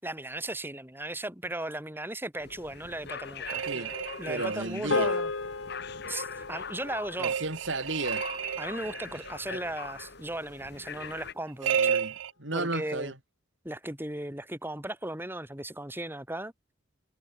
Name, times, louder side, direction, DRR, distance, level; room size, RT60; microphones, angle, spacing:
voice 1, 0.0-3.9 4.2-5.3 6.1-7.3 8.6-12.0 12.5-13.1 13.6-16.5, right 1 dB, 10° right, 4.7 m, -36 dB
sound 1, 2.4-11.3, left 5 dB, 60° left, 2.5 m, -42 dB
sound 2, 3.5-4.8 7.2-9.3 11.6-12.3, right 7 dB, 90° right, 0.5 m, -31 dB
voice 2, 4.3-5.1 7.2-8.3 9.5-9.6 11.7-13.2, right 2 dB, 70° right, 3.8 m, -34 dB
sound 3, 4.9-9.4, left 3 dB, 80° left, 1.4 m, -35 dB
head